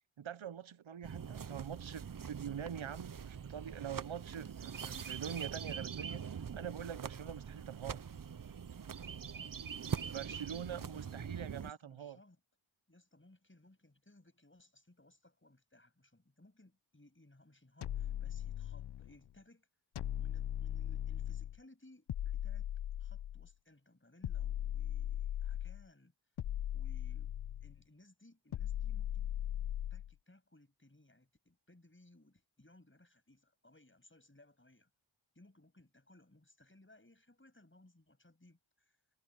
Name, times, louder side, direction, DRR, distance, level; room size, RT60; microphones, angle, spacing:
voice 1, 0.2-8.0 10.1-12.2, right 8 dB, 70° right, 0.8 m, -44 dB
sound 1, 1.0-11.7, right 7 dB, 40° right, 0.7 m, -43 dB
voice 2, 10.5-11.3 11.6-12.4 12.9-19.7 20.2-22.7 23.0-26.1 26.7-27.4 27.6-29.3 29.9-34.9 35.3-39.0, left 1 dB, 25° left, 7.7 m, -63 dB
sound 2, 17.8-19.1 20.0-21.6 22.1-23.5 24.2-25.8 26.4-27.8 28.5-30.1, left 11 dB, 55° left, 0.5 m, -38 dB
wide cardioid pair, 65°, 49 cm